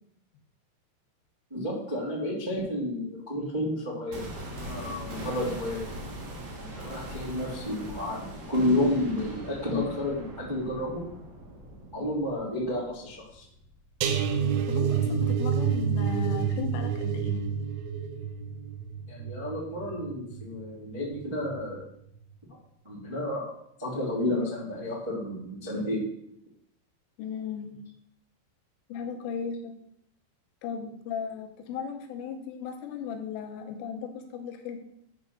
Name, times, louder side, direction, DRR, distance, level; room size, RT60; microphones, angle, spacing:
voice 1, 1.5-4.3 4.6-5.9 6.6-11.0 11.9-13.4 19.1-21.8 22.8-23.5 23.8-26.1, left 1 dB, 15° right, -8 dB, 1.1 m, -31 dB
sound 1, 4.1-14.1 14.4-14.5, right 1 dB, 55° right, 2.0 m, -41 dB
sound 2, 14.0-21.1 21.4-21.7 22.1-22.2, right 7 dB, 80° right, 3.0 m, -29 dB
voice 2, 14.7-17.4 27.2-27.8 28.9-29.7 30.6-34.8, left 7 dB, 85° left, 5 dB, 3.4 m, -36 dB
9.5 x 3.8 x 6.0 m, 0.74 s
omnidirectional pair, 5.7 m